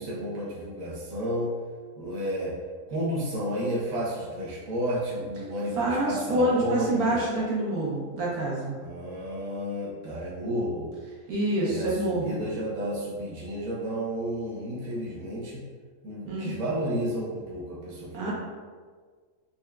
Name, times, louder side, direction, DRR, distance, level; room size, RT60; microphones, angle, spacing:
voice 1, 0.0-1.5 1.9-2.5 2.9-7.3 8.8-10.9 11.6-15.6 16.0-18.3, equal, 70° right, -6 dB, 1.2 m, -32 dB
voice 2, 5.8-8.7 11.3-12.4 16.2-16.6 18.1-18.3, right 1 dB, 90° right, -5 dB, 1.5 m, -27 dB
4.1 x 3.5 x 2.3 m, 1.5 s
omnidirectional pair, 1.5 m